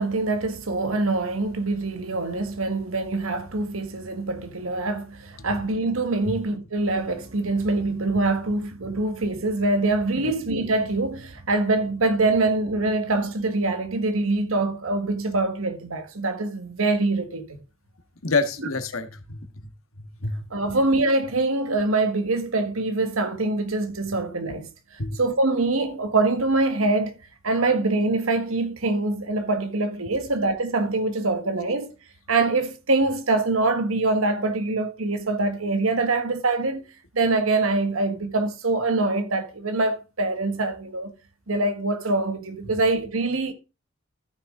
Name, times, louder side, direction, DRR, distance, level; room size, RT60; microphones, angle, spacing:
voice 1, 0.0-17.6 20.5-24.7 25.2-27.1 27.4-31.9 32.3-36.8 37.1-41.1 41.5-43.5, right 2 dB, 80° right, 1.5 m, -24 dB
voice 2, 18.2-19.7 20.2-20.5 25.0-25.2, left 3 dB, 80° left, 1.5 m, -27 dB
14.0 x 6.4 x 3.7 m
head